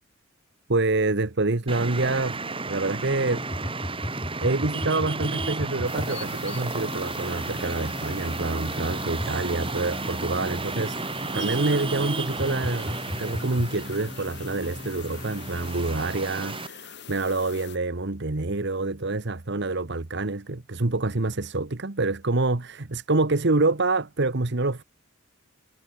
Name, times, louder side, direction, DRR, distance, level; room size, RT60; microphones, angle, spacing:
voice 1, 0.7-3.4 4.4-11.0 11.3-24.8, right 2 dB, 60° right, 1.3 m, -27 dB
Traffic noise roadway noise, 1.7-16.7, right 3 dB, 25° right, 3.1 m, -33 dB
sound 1, 3.0-16.1, equal, 20° left, 1.7 m, -38 dB
sound 2, 5.8-17.8, left 8 dB, 60° left, 3.9 m, -44 dB
head